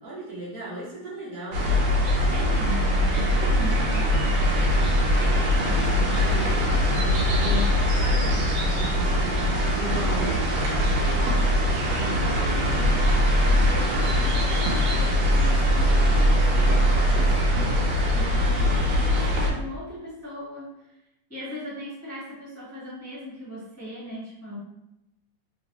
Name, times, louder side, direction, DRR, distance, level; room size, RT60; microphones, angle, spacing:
voice 1, 0.0-1.9 5.7-7.6 8.0-11.4, right 1 dB, 55° right, -7 dB, 1.1 m, -37 dB
sound 1, 1.5-19.5, equal, 75° right, 1.4 m, -22 dB
voice 2, 2.3-5.1 5.6-6.1 7.4-7.9 12.0-16.8 17.1-20.9 21.3-24.6, left 1 dB, 10° left, -10 dB, 0.8 m, -39 dB
3.2 x 2.8 x 2.9 m, 0.87 s
omnidirectional pair, 2.1 m